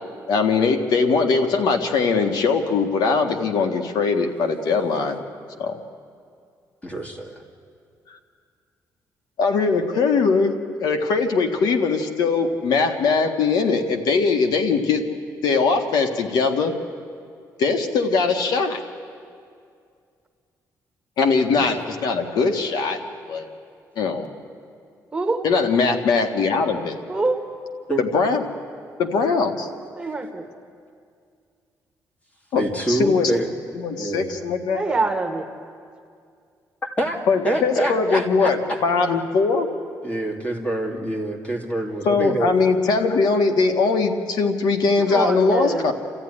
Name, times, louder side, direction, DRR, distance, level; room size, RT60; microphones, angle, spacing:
voice 1, 0.3-5.2 5.6-5.8 9.4-10.5 10.8-15.0 15.4-16.7 17.6-18.8 21.2-23.0 23.3-23.5 24.0-24.3 25.4-27.0 28.0-28.4 29.0-29.7 32.5-33.3 33.7-34.8 37.3-39.7 42.0-45.9, left 4 dB, 80° left, 6 dB, 1.7 m, -21 dB
voice 2, 6.8-7.4 21.5-21.6 27.9-28.0 32.6-33.5 34.0-34.3 37.0-37.2 37.4-38.8 40.0-42.5, right 1 dB, 20° left, 3 dB, 2.6 m, -26 dB
voice 3, 25.1-25.4 27.1-27.4 29.9-30.5 34.7-35.5 45.0-45.9, right 3 dB, 15° right, 4 dB, 1.7 m, -24 dB
29.0 x 14.0 x 10.0 m, 2.3 s
cardioid pair, 145°, 7 cm